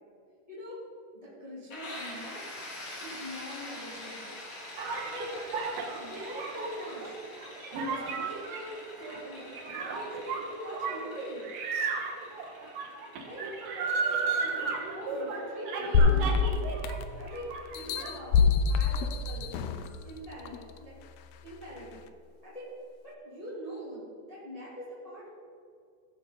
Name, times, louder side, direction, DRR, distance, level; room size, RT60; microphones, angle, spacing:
voice 1, 0.5-0.8 1.1-2.4 3.0-4.4 5.0-5.5 6.0-7.2 7.8-10.2 10.5-11.5 13.2-13.4 13.7-16.5 17.2-19.5 20.0-21.0 21.4-22.1 22.4-22.7 23.0-25.3, equal, 10° left, -8 dB, 2.7 m, -43 dB
sound 1, 1.7-17.3, left 1 dB, 50° left, 3.3 m, -46 dB
sound 2, 4.8-17.0 17.3-18.1, right 4 dB, 90° right, 3.0 m, -34 dB
sound 3, 15.9-17.2 17.7-19.9 20.5-20.6, left 5 dB, 75° left, 1.6 m, -25 dB
16.0 x 7.1 x 5.2 m, 2.3 s
omnidirectional pair, 3.7 m